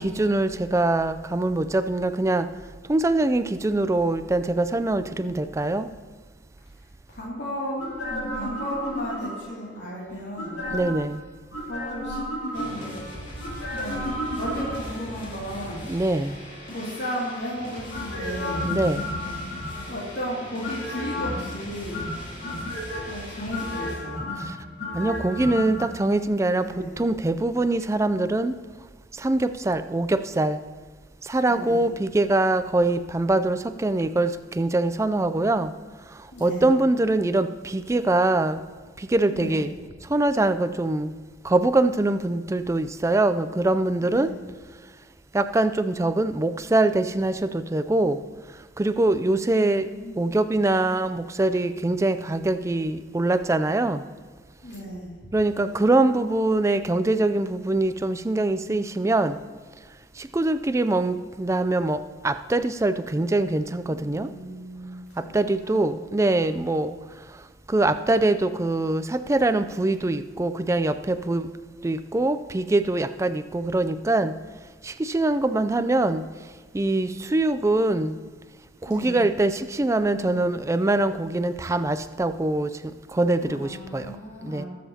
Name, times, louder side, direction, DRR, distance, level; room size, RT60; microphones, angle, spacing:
voice 1, 0.0-2.5 2.9-5.9 10.7-11.2 15.8-16.4 18.6-19.1 24.9-26.7 27.0-28.5 29.2-30.6 31.3-35.7 36.4-38.6 39.1-39.7 40.1-41.1 41.4-44.3 45.3-48.2 48.8-49.9 50.2-54.0 55.3-59.4 60.3-62.0 62.2-64.3 65.3-66.9 67.7-71.5 71.8-74.3 74.9-76.2 76.7-78.2 78.9-82.7 83.1-84.1 84.5-84.6, right 2 dB, 15° right, 11 dB, 0.4 m, -23 dB
voice 2, 7.1-10.6 11.5-12.2 12.5-13.0 13.7-15.9 16.7-18.7 19.9-22.1 23.0-24.3 26.6-27.0 31.4-31.9 36.3-36.8 39.3-39.7 44.0-44.4 49.2-50.3 54.6-55.1 63.9-65.8 78.8-79.3 83.4-84.7, equal, 65° left, -7 dB, 2.6 m, -35 dB
sound 1, 7.8-9.6 10.3-11.1 11.5-13.0 13.4-15.1 17.9-20.0 20.6-21.5 21.9-23.1 23.5-25.9 26.1-26.2, left 1 dB, 85° left, 2.4 m, -32 dB
sound 2, 12.5-24.0, equal, 45° left, 2.9 m, -40 dB
20.0 x 7.6 x 2.8 m, 1.5 s
head